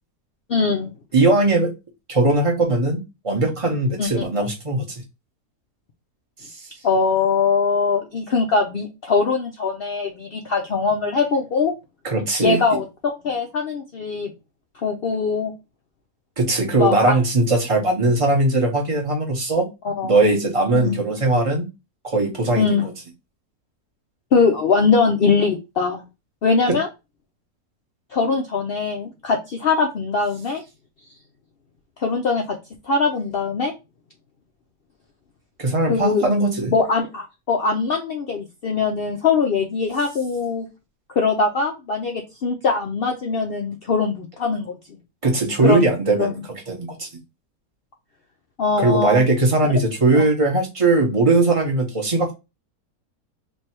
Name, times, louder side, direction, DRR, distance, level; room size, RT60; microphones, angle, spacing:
voice 1, 0.5-0.9 4.0-4.2 6.8-11.7 12.4-14.3 14.8-15.5 16.8-17.2 19.8-20.1 20.7-21.0 22.6-22.9 24.3-26.1 26.4-26.9 28.1-30.6 32.0-32.6 32.8-33.7 35.9-36.2 36.7-40.7 41.1-45.0 45.6-45.9 46.2-46.4 48.6-49.2, left 4 dB, 80° left, 2 dB, 0.5 m, -21 dB
voice 2, 1.1-1.7 2.1-5.0 12.0-12.6 16.4-19.7 20.0-21.7 22.0-22.8 26.7-26.8 35.6-36.7 45.2-47.1 48.8-52.3, right 2 dB, 25° right, 1 dB, 0.7 m, -19 dB
3.2 x 2.6 x 4.3 m, 0.26 s
omnidirectional pair, 1.7 m